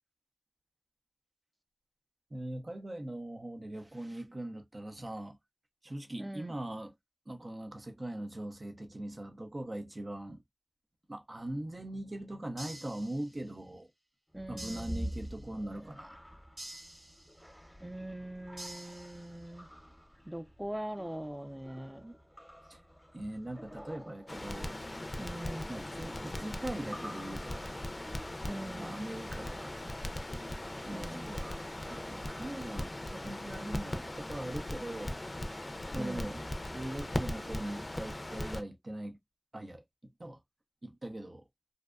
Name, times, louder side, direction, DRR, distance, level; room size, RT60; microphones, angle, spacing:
voice 1, 2.3-5.4 5.8-6.9 7.3-10.4 11.1-13.9 14.5-16.2 22.7-22.8 23.1-24.8 25.7-27.8 28.8-29.7 30.8-35.2 35.9-36.4 36.6-39.2 39.5-40.4 40.8-41.5, right 1 dB, 75° right, 0.6 m, -41 dB
voice 2, 6.2-6.6 14.3-15.1 17.8-19.7 20.3-22.2 25.2-25.7 28.5-29.0 30.9-31.3 36.0-36.3, right 1 dB, 20° right, 0.5 m, -42 dB
sound 1, 12.6-13.6 14.6-15.6 16.6-17.6 18.6-19.6, right 1 dB, 55° right, 1.0 m, -49 dB
sound 2, 14.3-33.0, equal, 10° left, 0.7 m, -49 dB
Crackle, 24.3-38.6, left 1 dB, 60° left, 0.3 m, -39 dB
2.6 x 2.1 x 2.3 m
wide cardioid pair, 45°, 0 cm